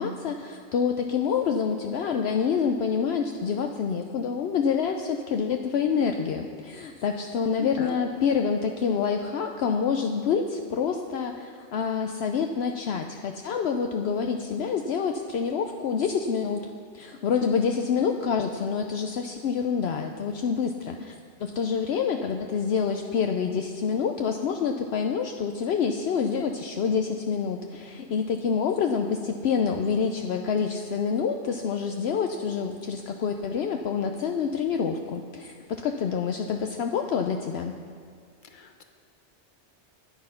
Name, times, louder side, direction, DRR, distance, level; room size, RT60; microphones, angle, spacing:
voice 1, 0.0-16.7 16.9-37.8, left 6 dB, 70° left, 5 dB, 0.9 m, -27 dB
voice 2, 7.6-7.9 38.5-38.8, left 2 dB, 45° left, 6 dB, 1.1 m, -37 dB
12.5 x 9.8 x 5.6 m, 2.1 s
omnidirectional pair, 1.2 m